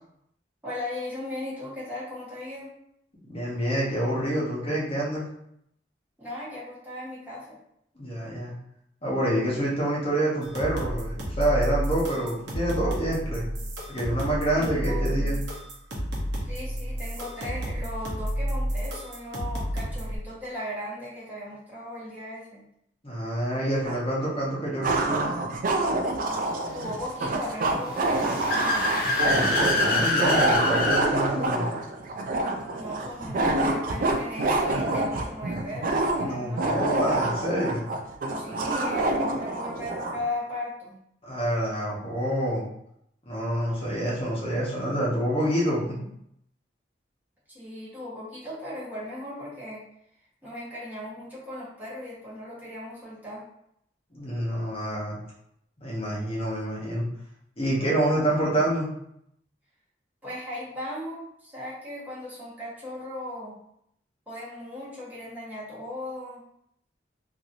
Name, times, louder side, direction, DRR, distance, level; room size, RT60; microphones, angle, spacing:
voice 1, 0.6-2.7 6.2-7.6 14.6-15.4 16.5-22.6 26.7-28.4 32.7-36.7 38.3-40.9 47.5-49.8 50.4-53.4 60.2-63.6 64.3-66.4, left 1 dB, 10° right, -10 dB, 1.2 m, -37 dB
voice 2, 3.3-5.3 8.0-8.5 9.0-13.4 13.9-15.4 23.0-25.3 29.1-31.7 36.2-37.9 41.2-42.7 43.3-46.1 54.1-55.2 55.8-57.0 57.6-58.9, right 1 dB, 30° left, -6 dB, 1.0 m, -27 dB
sound 1, 10.4-20.2, equal, 65° right, 0.8 m, -31 dB
sound 2, 23.8-24.0 24.8-40.2, right 2 dB, 50° right, 0.3 m, -27 dB
Car / Accelerating revving vroom, 27.8-31.1, left 2 dB, 50° left, 0.7 m, -25 dB
2.9 x 2.6 x 2.6 m, 0.75 s
head